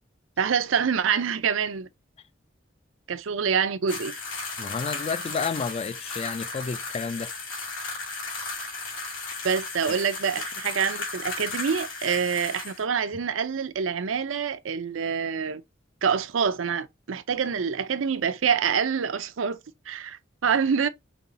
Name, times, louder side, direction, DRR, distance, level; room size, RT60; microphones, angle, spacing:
voice 1, 0.4-1.9 3.1-4.1 9.4-15.6 16.0-20.9, right 6 dB, 85° right, 0.5 m, -26 dB
sound 1, 3.9-12.8, left 3 dB, 90° left, 2.2 m, -35 dB
voice 2, 4.6-7.3, left 5 dB, 30° left, 0.3 m, -31 dB
5.2 x 3.0 x 2.6 m
head